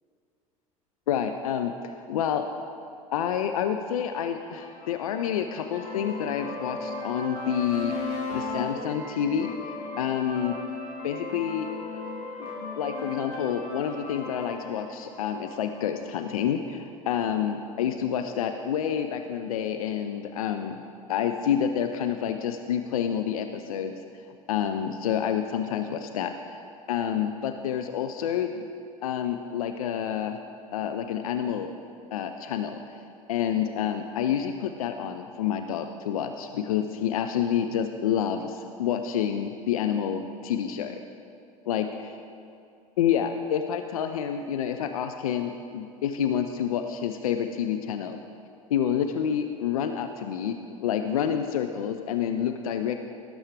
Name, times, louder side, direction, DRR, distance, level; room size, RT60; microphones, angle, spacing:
voice 1, 1.1-2.4 3.1-10.5 11.0-12.0 12.4-12.5 12.8-20.8 21.1-26.6 26.9-28.7 29.0-30.4 30.7-31.7 32.1-33.0 33.3-41.0 41.7-42.1 43.0-48.2 48.7-53.0, left 9 dB, 70° left, 7 dB, 0.5 m, -28 dB
sound 1, 4.2-15.9, left 3 dB, 50° left, 2.4 m, -36 dB
17.5 x 7.1 x 3.4 m, 2.5 s
figure-of-eight pair, 70°, 19 cm